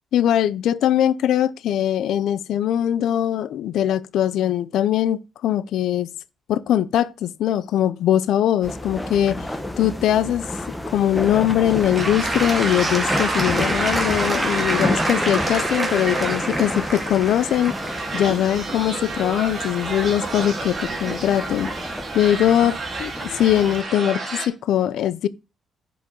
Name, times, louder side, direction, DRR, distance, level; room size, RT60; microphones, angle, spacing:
voice 1, 0.1-6.1 6.5-9.5 9.8-10.5 10.9-17.7 18.1-22.7 23.0-23.1 23.3-25.3, left 11 dB, 80° left, 0.6 m, -21 dB
sound 1, 8.6-23.8, left 1 dB, 5° left, 0.9 m, -31 dB
Applause / Crowd, 11.2-20.1 20.7-20.8, right 1 dB, 15° right, 2.0 m, -27 dB
sound 2, 12.0-24.5, right 3 dB, 35° right, 2.3 m, -31 dB
10.5 x 5.1 x 3.9 m
cardioid pair, 145°, 0 cm